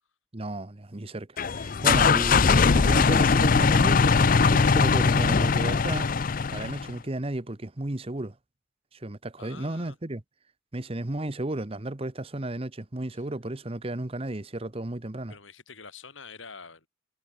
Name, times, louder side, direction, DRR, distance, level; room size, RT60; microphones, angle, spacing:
voice 1, 0.3-6.1 6.5-8.4 8.9-10.2 10.7-15.3, right 1 dB, 30° right, 1.0 m, -33 dB
sound 1, 1.4-6.9, left 5 dB, 45° left, 0.5 m, -21 dB
voice 2, 1.7-2.1 9.4-10.0 13.1-13.2 15.3-16.9, left 5 dB, 75° left, 5.2 m, -46 dB
head